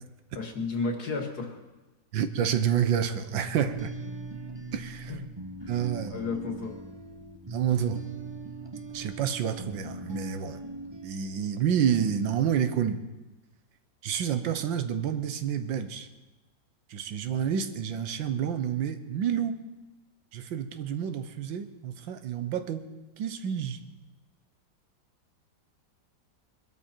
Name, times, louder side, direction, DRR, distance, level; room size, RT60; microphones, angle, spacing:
voice 1, 0.4-1.6 5.1-5.2 5.6-5.7 6.1-6.8, left 3 dB, 55° left, 4 dB, 2.3 m, -32 dB
voice 2, 2.1-3.9 4.7-5.1 5.7-6.2 7.5-8.0 8.9-10.6 11.0-13.0 14.0-16.1 16.9-19.6 20.3-22.9 23.2-23.8, right 8 dB, 80° right, 10 dB, 1.7 m, -29 dB
sound 1, 3.3-12.0, right 2 dB, 35° right, 0.4 m, -41 dB
22.5 x 13.0 x 4.4 m, 1.1 s
omnidirectional pair, 2.0 m